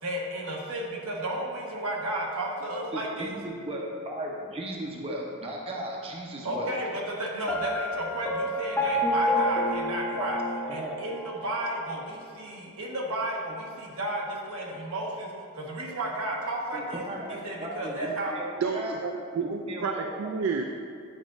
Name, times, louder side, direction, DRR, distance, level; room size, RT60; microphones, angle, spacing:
voice 1, 0.0-3.3 6.4-10.4 10.7-17.0 17.3-18.3, right 1 dB, 85° right, -2 dB, 1.2 m, -33 dB
voice 2, 2.9-6.7 10.1-10.3 10.7-11.0 16.7-19.0 19.4-20.4, right 1 dB, 25° right, -2 dB, 0.7 m, -36 dB
Piano, 7.5-11.3, left 1 dB, 10° left, 0.6 m, -28 dB
voice 3, 18.6-20.6, right 5 dB, 65° right, 3 dB, 0.3 m, -30 dB
9.3 x 4.9 x 2.5 m, 2.3 s
head